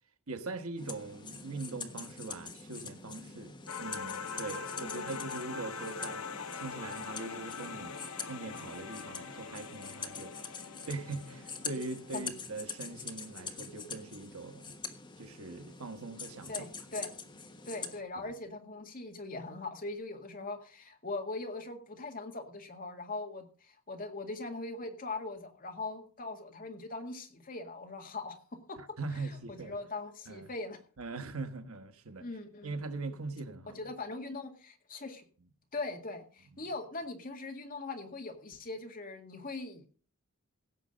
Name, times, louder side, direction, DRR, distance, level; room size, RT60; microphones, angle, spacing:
voice 1, 0.3-6.3 6.5-8.0 8.3-10.3 10.9-14.8 15.2-16.6 18.1-18.3 28.8-29.8 30.3-30.5 31.0-32.3 32.6-33.9 36.6-36.7, right 3 dB, 90° right, 1.4 m, -41 dB
sound 1, 0.8-18.0, left 5 dB, 20° left, 1.3 m, -45 dB
sound 2, 3.7-12.3, left 5 dB, 80° left, 1.1 m, -43 dB
voice 2, 16.5-17.2 17.7-28.4 28.7-28.8 29.5-30.8 32.2-32.8 33.7-35.2 35.7-39.9, left 3 dB, 40° left, 2.0 m, -41 dB
17.0 x 7.5 x 5.1 m
head